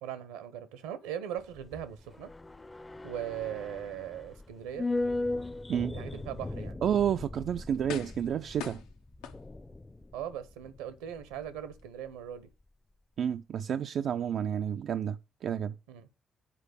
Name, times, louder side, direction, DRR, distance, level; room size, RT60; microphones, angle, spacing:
voice 1, 0.0-2.3 3.0-4.9 5.9-6.8 10.1-12.5 15.9-16.1, right 10 dB, 80° right, 0.9 m, -39 dB
sound 1, 1.4-11.8 12.1-12.2, left 2 dB, 25° left, 0.6 m, -38 dB
voice 2, 6.8-8.8 13.2-15.2 15.4-15.7, right 9 dB, 60° right, 0.3 m, -30 dB
sound 2, 7.9-8.3 8.6-9.8 10.4-10.5, left 9 dB, 80° left, 0.7 m, -42 dB
8.4 x 4.7 x 6.8 m
hypercardioid pair, 45°, 0 cm